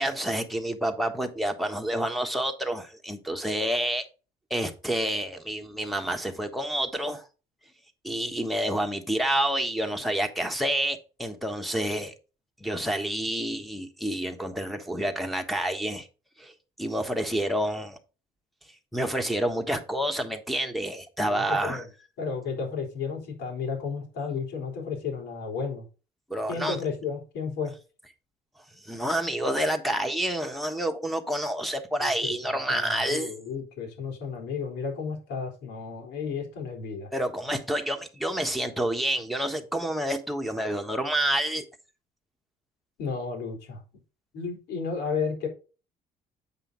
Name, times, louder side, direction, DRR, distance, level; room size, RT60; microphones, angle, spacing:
voice 1, 0.0-4.0 4.5-7.3 8.0-12.1 12.6-16.1 16.4-16.5 16.8-18.0 18.9-21.8 26.3-26.8 28.8-33.3 37.1-41.6, right 1 dB, ahead, 1.3 m, -28 dB
voice 2, 21.3-21.8 22.2-25.9 26.5-27.7 32.0-37.1 43.0-43.8 44.3-45.5, left 5 dB, 85° left, 3.7 m, -33 dB
8.4 x 5.6 x 3.9 m
cardioid pair, 110°, 17 cm